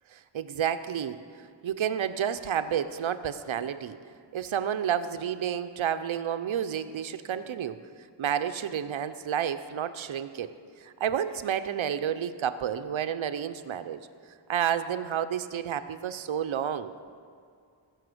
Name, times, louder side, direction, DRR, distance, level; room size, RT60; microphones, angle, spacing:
voice 1, 0.1-1.2 1.6-4.0 4.3-7.8 8.2-10.5 10.8-14.1 14.5-16.9, right 9 dB, 70° right, 10 dB, 0.7 m, -30 dB
15.0 x 6.5 x 7.8 m, 2.2 s
wide cardioid pair, 65°, 49 cm